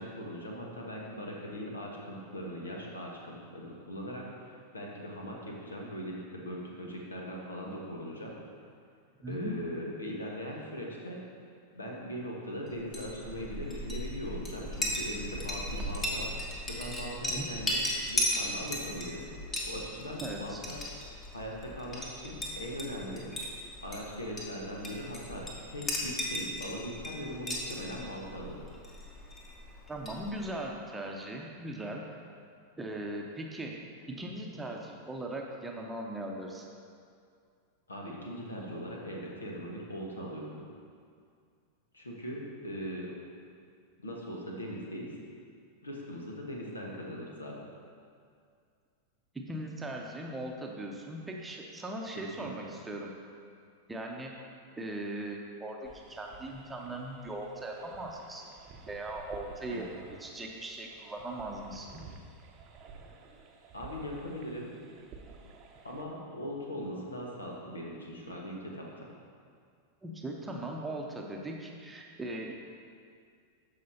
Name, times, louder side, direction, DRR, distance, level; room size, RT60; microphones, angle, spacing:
voice 1, 0.0-8.3 9.3-11.2 11.7-20.8 21.3-23.3 23.8-28.5 37.9-40.6 41.9-43.2 44.0-45.1 45.8-47.6 52.4-52.5 59.7-59.8 63.7-64.7 65.8-69.1, equal, 75° left, -2 dB, 1.3 m, -40 dB
voice 2, 9.2-9.6 17.3-17.5 20.2-20.6 29.9-32.0 32.8-33.7 34.1-36.6 49.3-53.1 53.9-54.4 54.8-58.5 58.8-59.8 60.2-62.0 70.0-72.5, right 1 dB, 10° right, 0 dB, 0.8 m, -39 dB
Chink clink, 12.8-30.6, left 1 dB, 20° left, 1.4 m, -37 dB
sound 1, 55.8-66.0, right 4 dB, 35° right, 0.8 m, -52 dB
13.5 x 5.0 x 2.8 m, 2.3 s
figure-of-eight pair, 90°, 0 cm